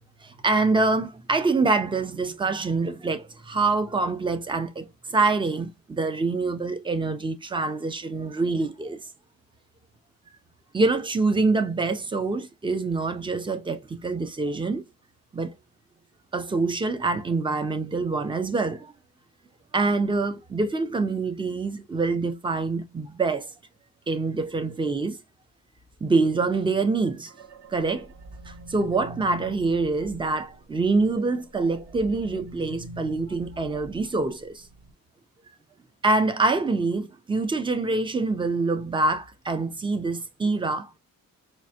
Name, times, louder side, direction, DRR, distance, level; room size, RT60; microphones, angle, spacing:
voice 1, 0.2-9.1 10.7-14.8 15.3-15.5 16.3-18.9 19.7-23.5 24.1-25.2 26.0-27.3 27.7-28.1 28.5-34.6 36.0-41.0, right 3 dB, 15° right, 0.5 m, -25 dB
sound 1, 27.3-31.2 31.5-34.9, right 1 dB, 50° right, 1.2 m, -44 dB
4.4 x 2.5 x 2.7 m
wide cardioid pair, 140°, 35 cm